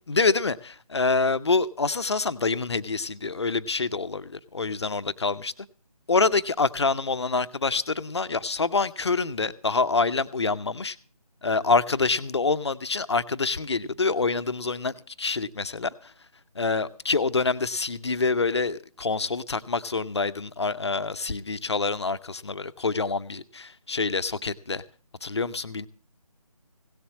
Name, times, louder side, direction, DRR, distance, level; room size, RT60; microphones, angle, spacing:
voice 1, 0.1-5.5 6.1-11.0 11.4-16.1 16.5-24.8 25.2-25.9, left 4 dB, 45° left, 0.7 m, -26 dB
17.0 x 7.0 x 7.2 m
figure-of-eight pair, 155°, 19 cm